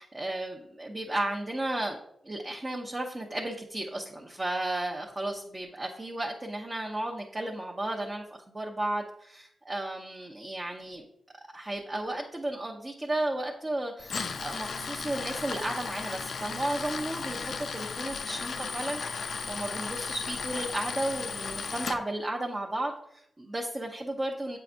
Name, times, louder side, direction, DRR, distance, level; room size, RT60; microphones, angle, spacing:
voice 1, 0.0-2.0 2.2-11.0 11.5-24.6, right 1 dB, 30° right, 0 dB, 0.7 m, -34 dB
Tools, 14.0-22.0, left 5 dB, 70° left, 0.4 m, -35 dB
7.9 x 4.7 x 2.5 m, 0.73 s
cardioid pair, 65°, 0 cm